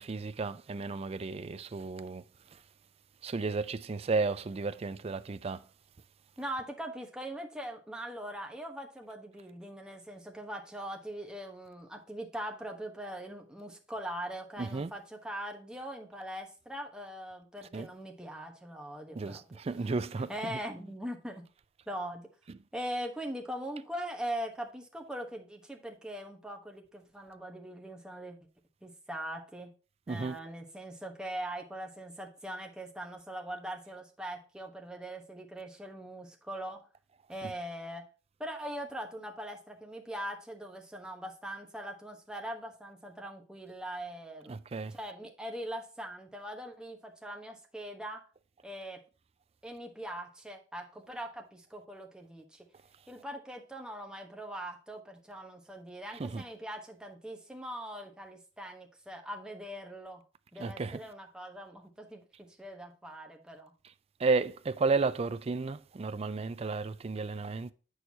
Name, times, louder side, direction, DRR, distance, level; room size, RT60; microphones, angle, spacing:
voice 1, 0.0-2.2 3.2-5.6 14.6-14.9 17.7-17.9 19.2-20.6 30.1-30.4 44.5-44.9 56.2-56.4 60.6-61.0 64.2-67.7, right 4 dB, 35° right, 0.4 m, -33 dB
voice 2, 6.4-19.4 20.3-21.4 21.9-22.3 22.7-28.4 28.8-29.7 30.1-36.9 37.3-38.1 38.4-44.5 44.9-48.2 48.6-49.0 49.6-52.7 53.1-60.2 60.5-63.7, right 1 dB, 5° right, 1.1 m, -41 dB
7.8 x 6.3 x 2.8 m
head